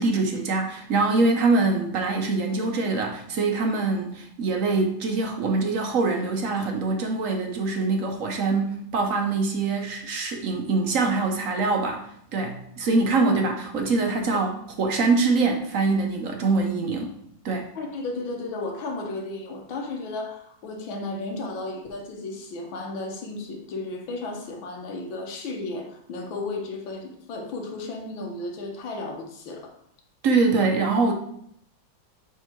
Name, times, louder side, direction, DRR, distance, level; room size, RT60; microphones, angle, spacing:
voice 1, 0.0-12.1 12.3-14.5 14.8-17.1 17.4-17.7 30.2-31.1, right 3 dB, 60° right, 3 dB, 0.9 m, -24 dB
voice 2, 17.8-29.7, left 2 dB, 85° left, 1 dB, 1.8 m, -34 dB
6.5 x 3.6 x 4.5 m, 0.68 s
omnidirectional pair, 2.1 m